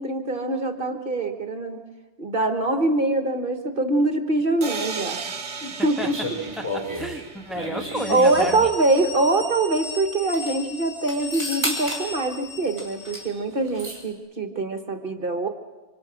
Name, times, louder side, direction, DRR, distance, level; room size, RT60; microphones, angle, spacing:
voice 1, 0.0-1.8 2.2-5.2 5.6-6.2 8.1-15.5, right 2 dB, 50° right, 6 dB, 1.4 m, -23 dB
sound 1, 4.6-8.4, right 5 dB, 75° right, 1.3 m, -36 dB
sound 2, 6.0-8.8 9.8-9.9 10.2-10.5 11.1-12.1 12.8-13.3 13.5-14.0, equal, 35° right, 5.1 m, -32 dB
voice 2, 6.6-8.7, equal, ahead, 3 dB, 1.4 m, -32 dB
sound 3, 7.8-13.5, left 2 dB, 50° left, 3.7 m, -37 dB
27.5 x 25.5 x 6.2 m, 1.3 s
omnidirectional pair, 1.2 m